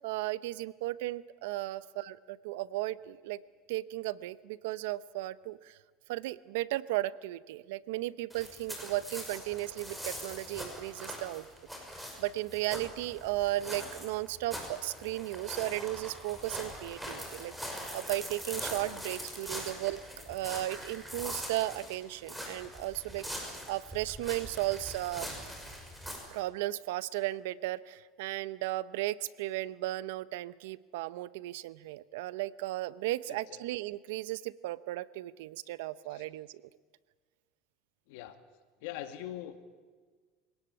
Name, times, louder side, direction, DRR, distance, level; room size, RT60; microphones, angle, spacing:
voice 1, 0.0-3.4 3.7-5.8 6.1-11.5 12.2-20.0 20.3-25.3 26.3-36.6, right 16 dB, 80° right, 17 dB, 0.8 m, -35 dB
sound 1, 8.3-26.2, equal, 5° right, 5.8 m, -42 dB
voice 2, 33.3-33.6 36.1-36.3 38.1-38.4 38.8-39.6, left 12 dB, 75° left, 8 dB, 2.1 m, -42 dB
25.0 x 18.5 x 8.8 m, 1.5 s
supercardioid pair, 120°, 0 cm